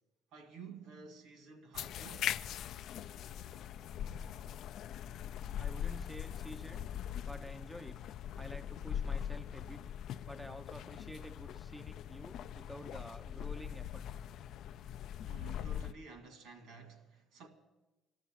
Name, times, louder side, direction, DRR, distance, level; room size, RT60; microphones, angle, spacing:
voice 1, 0.3-2.3 15.2-17.5, right 4 dB, 70° right, 2.2 m, -52 dB
sound 1, 1.7-15.9, left 9 dB, 60° left, 0.4 m, -41 dB
voice 2, 5.6-6.9 7.3-8.0 8.4-9.8 10.3-14.0, equal, 5° right, 0.5 m, -49 dB
14.5 x 12.0 x 7.5 m
cardioid pair, 150°, 0 cm